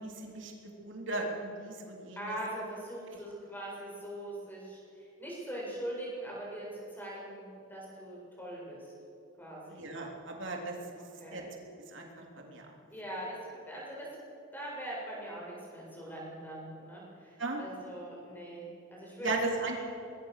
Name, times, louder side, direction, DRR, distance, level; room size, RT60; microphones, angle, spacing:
voice 1, 0.0-2.4 9.7-10.8 11.3-11.4 11.9-12.7 17.4-17.6 19.2-19.8, right 2 dB, 60° right, 1 dB, 3.5 m, -36 dB
voice 2, 2.2-8.9 9.4-9.8 11.2-11.5 12.9-13.4 13.7-14.1 14.5-19.4 19.7-19.9, right 1 dB, 10° left, -4 dB, 7.6 m, -42 dB
24.5 x 21.5 x 6.7 m, 2.6 s
head